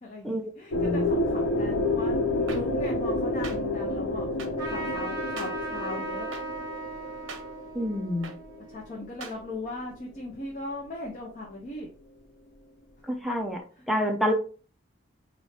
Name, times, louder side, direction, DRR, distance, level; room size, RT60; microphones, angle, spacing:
voice 1, 0.0-2.2 2.5-4.3 4.6-6.3 8.7-11.9 13.8-13.9, left 2 dB, 40° left, -2 dB, 0.7 m, -38 dB
sound 1, 0.7-8.5, left 2 dB, 85° left, 0.7 m, -29 dB
voice 2, 0.7-1.1 7.7-8.3 13.1-13.6 13.9-14.3, equal, ahead, 2 dB, 0.5 m, -28 dB
sound 2, 2.5-2.6 3.4-3.6 4.4-4.5 5.4-5.5 6.3-6.4 7.3-7.4 8.2-8.3 9.2-9.3, right 5 dB, 75° right, 0.7 m, -39 dB
Trumpet, 4.6-9.6, right 2 dB, 20° right, 2.0 m, -38 dB
4.2 x 2.6 x 3.2 m, 0.38 s
head